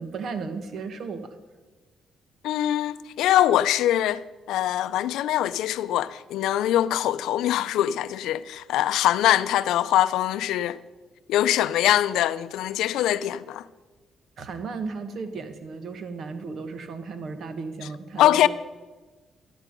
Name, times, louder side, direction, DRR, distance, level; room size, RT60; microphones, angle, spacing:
voice 1, 0.0-1.4 14.4-18.5, right 4 dB, 60° right, 1.4 m, -35 dB
voice 2, 2.4-10.8 11.3-13.6 18.2-18.5, left 12 dB, 85° left, 0.5 m, -23 dB
13.0 x 11.5 x 5.2 m
cardioid pair, 90°, 0 cm